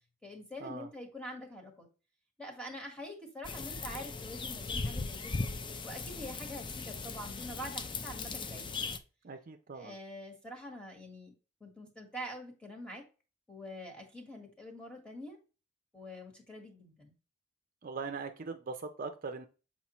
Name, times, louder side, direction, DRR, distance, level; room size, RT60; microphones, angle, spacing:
voice 1, 0.2-1.9 2.4-5.4 5.8-8.8 9.7-13.0 13.5-15.4 15.9-17.1, equal, 5° left, 2 dB, 1.5 m, -45 dB
sound 1, 3.4-9.0, left 4 dB, 25° left, 0.4 m, -38 dB
voice 2, 9.2-9.9 17.8-19.5, right 4 dB, 45° right, 6 dB, 0.5 m, -41 dB
7.0 x 4.4 x 3.0 m, 0.33 s
head